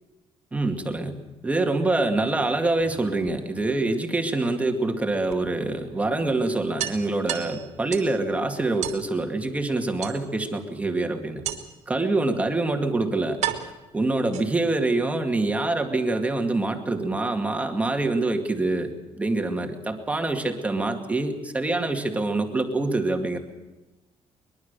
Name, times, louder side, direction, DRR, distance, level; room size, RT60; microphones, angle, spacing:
voice 1, 0.5-1.1 1.4-11.4 11.9-13.4 13.9-23.4, right 2 dB, 10° right, 4 dB, 2.2 m, -25 dB
sound 1, 2.8-3.8 5.3-5.4 5.8-5.9 6.2-6.3 6.8-8.2 8.8-9.1 10.0-10.6 11.4-11.9 12.7-12.8 13.4-14.8, right 11 dB, 85° right, 3.1 m, -33 dB
23.0 x 22.0 x 6.8 m, 1.1 s
cardioid pair, 175°, 12 cm